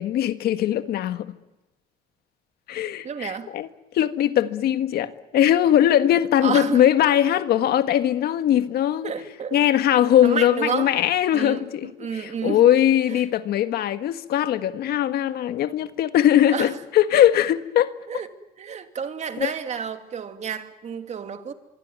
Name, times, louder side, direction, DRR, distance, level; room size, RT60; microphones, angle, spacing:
voice 1, 0.0-1.3 2.7-3.7 3.9-9.1 9.5-17.9 19.4-19.5, left 11 dB, 70° left, 1.7 m, -20 dB
voice 2, 3.0-3.5 6.4-6.8 9.0-9.6 10.2-11.0 11.3-12.7 13.1-13.2 16.5-16.8 18.1-18.3 18.6-21.5, right 7 dB, 40° right, 2.6 m, -30 dB
25.5 x 24.5 x 9.4 m
cardioid pair, 110°, 17 cm